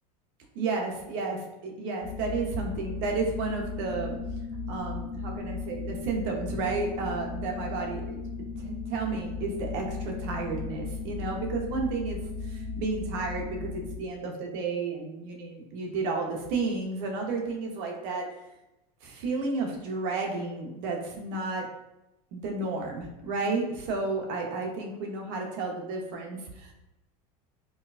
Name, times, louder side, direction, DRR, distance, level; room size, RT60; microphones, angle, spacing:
voice 1, 0.5-4.2 4.7-8.2 8.6-18.2 19.0-21.6 22.3-26.7, right 3 dB, 60° right, 1 dB, 0.9 m, -32 dB
sound 1, 2.0-14.0, left 4 dB, 55° left, 1.3 m, -36 dB
4.4 x 2.2 x 2.4 m, 0.95 s
supercardioid pair, 120°, 20 cm